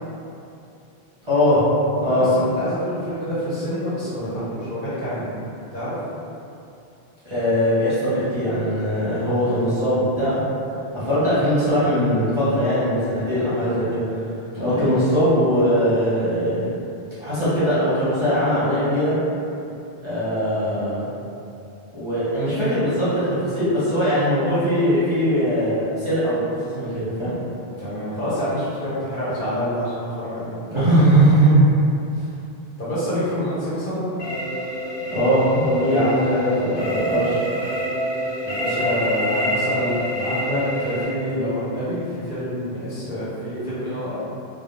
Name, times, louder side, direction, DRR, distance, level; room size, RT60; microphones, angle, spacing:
voice 1, 1.3-1.6 2.0-2.3 7.3-10.4 10.9-14.0 14.6-16.6 17.2-19.2 20.0-21.1 21.9-27.3 30.7-31.6 35.1-37.4, equal, 35° right, -13 dB, 0.7 m, -20 dB
voice 2, 2.1-5.3 5.7-5.9 14.5-14.8 27.8-30.6 32.1-32.3 32.8-34.1 38.4-44.1, equal, 55° left, -12 dB, 1.0 m, -27 dB
sound 1, 34.2-41.1, equal, 85° left, 1.2 m, -27 dB
2.2 x 2.2 x 2.9 m, 2.7 s
omnidirectional pair, 1.0 m